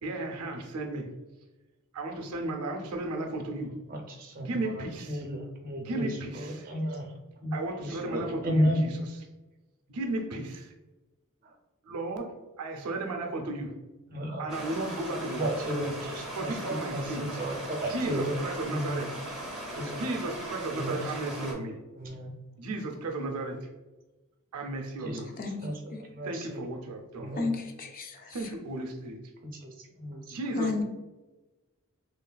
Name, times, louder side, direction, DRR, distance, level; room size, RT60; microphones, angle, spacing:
voice 1, 0.0-1.1 1.9-3.8 4.4-5.2 5.8-6.7 7.5-8.9 9.9-10.7 11.9-13.7 14.4-15.5 16.3-17.3 17.9-19.1 19.9-21.8 22.6-23.7 24.5-25.3 26.2-27.4 28.3-29.2 30.3-30.8, right 2 dB, 90° right, 3 dB, 0.5 m, -34 dB
voice 2, 3.9-7.1 7.4-8.8 11.4-11.5 14.1-14.5 14.8-14.9 15.3-18.4 18.7-19.1 19.7-19.9 20.7-21.6 22.0-22.3 25.0-25.2 25.6-26.7 27.1-27.6 29.4-30.4, equal, 40° right, 1 dB, 0.5 m, -33 dB
Stream, 14.5-21.5, right 1 dB, 5° right, 0.7 m, -39 dB
voice 3, 27.4-28.5 30.5-30.8, left 3 dB, 40° left, 3 dB, 0.4 m, -32 dB
3.1 x 2.4 x 2.2 m, 1.1 s
head